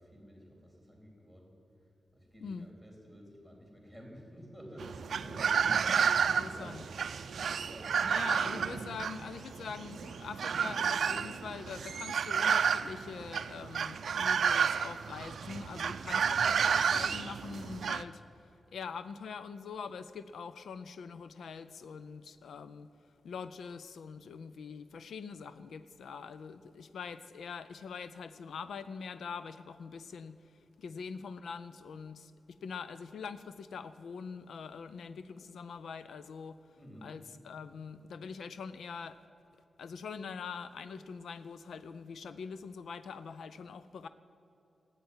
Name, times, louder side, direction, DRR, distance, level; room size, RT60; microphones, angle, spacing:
voice 1, 0.0-1.6 2.1-6.9 7.2-8.4 36.8-37.1, equal, 5° left, -1 dB, 3.6 m, -51 dB
sound 1, 4.8-18.0, right 7 dB, 65° right, 0.4 m, -31 dB
voice 2, 6.3-6.9 8.0-22.9 23.2-36.6 37.0-39.2 39.8-44.1, left 6 dB, 80° left, 12 dB, 0.4 m, -44 dB
15.0 x 9.1 x 9.6 m, 3.0 s
wide cardioid pair, 180°, 0 cm